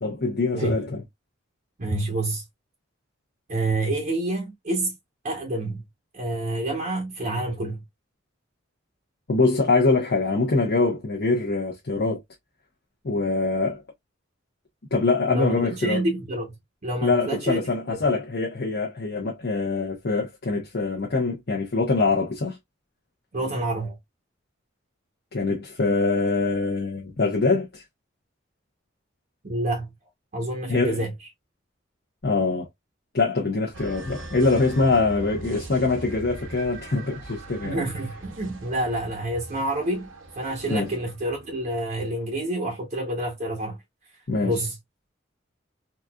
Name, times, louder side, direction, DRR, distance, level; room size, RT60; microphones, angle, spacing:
voice 1, 0.0-1.0 9.3-12.2 13.0-13.8 14.9-16.0 17.0-22.6 25.3-27.8 30.7-31.0 32.2-32.7 33.1-37.8 40.7-40.9 44.3-44.5, left 3 dB, 55° left, 0.8 m, -24 dB
voice 2, 1.8-2.4 3.5-4.9 5.2-5.9 6.1-7.8 15.3-16.6 16.8-17.7 23.3-24.0 29.4-29.9 30.3-31.1 37.6-40.1 40.4-43.8 44.4-44.8, right 1 dB, 45° right, 0.8 m, -28 dB
sound 1, 33.7-42.0, right 2 dB, 85° right, 0.9 m, -41 dB
4.1 x 2.4 x 2.2 m
head